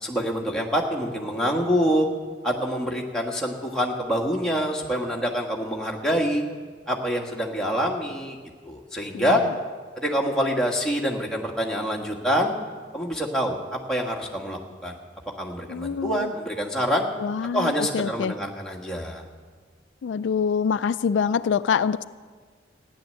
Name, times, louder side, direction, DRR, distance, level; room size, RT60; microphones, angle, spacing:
voice 1, 0.0-2.1 2.4-6.4 6.9-8.4 8.6-9.4 10.0-12.5 12.9-15.0 15.4-17.1 17.5-19.2, equal, 5° left, -2 dB, 1.5 m, -26 dB
voice 2, 9.1-9.5 15.7-16.3 17.2-18.3 20.0-22.0, left 6 dB, 85° left, 14 dB, 0.3 m, -25 dB
14.5 x 10.0 x 7.6 m, 1.5 s
head